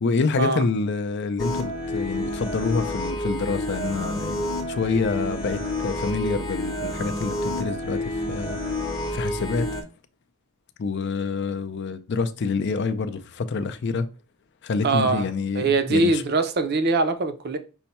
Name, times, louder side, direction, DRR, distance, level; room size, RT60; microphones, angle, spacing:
voice 1, 0.0-8.6 9.1-9.8 10.8-14.1 14.6-16.2, left 4 dB, 50° left, 0.4 m, -27 dB
sound 1, 1.4-9.8, left 1 dB, 20° left, 0.8 m, -29 dB
voice 2, 14.8-15.3 15.5-17.6, right 3 dB, 45° right, 0.5 m, -22 dB
5.5 x 2.2 x 4.1 m
head